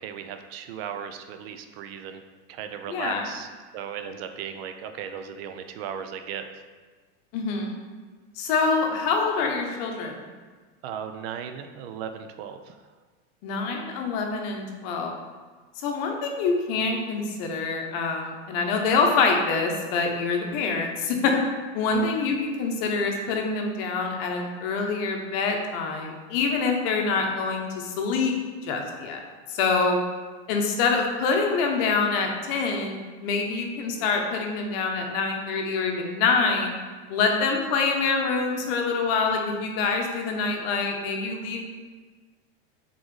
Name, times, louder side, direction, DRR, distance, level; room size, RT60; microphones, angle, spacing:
voice 1, 0.0-2.2 2.5-6.4 10.8-12.8 21.9-22.1, right 8 dB, 60° right, 7 dB, 0.4 m, -36 dB
voice 2, 2.9-3.3 7.3-7.7 8.4-10.1 13.4-15.1 15.8-21.3 21.7-28.3 28.6-29.2 29.5-30.0 30.5-36.7 37.1-41.7, left 4 dB, 55° left, 2 dB, 0.8 m, -25 dB
3.8 x 3.8 x 3.1 m, 1.4 s
supercardioid pair, 140°, 34 cm